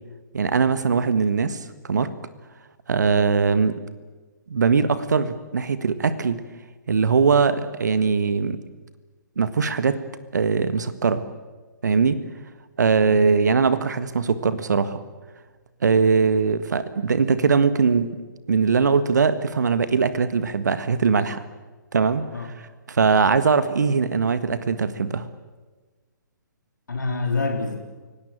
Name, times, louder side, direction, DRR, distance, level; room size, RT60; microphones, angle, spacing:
voice 1, 0.3-2.1 2.9-3.8 4.5-6.4 6.9-8.6 9.4-10.0 10.3-11.2 11.8-12.2 12.8-15.0 15.8-18.1 18.5-21.4 21.9-22.5 22.9-25.3, right 5 dB, 60° right, 13 dB, 1.6 m, -21 dB
voice 2, 26.9-27.8, left 3 dB, 70° left, 3 dB, 3.8 m, -27 dB
29.5 x 17.0 x 9.0 m, 1.3 s
figure-of-eight pair, 125°, 11 cm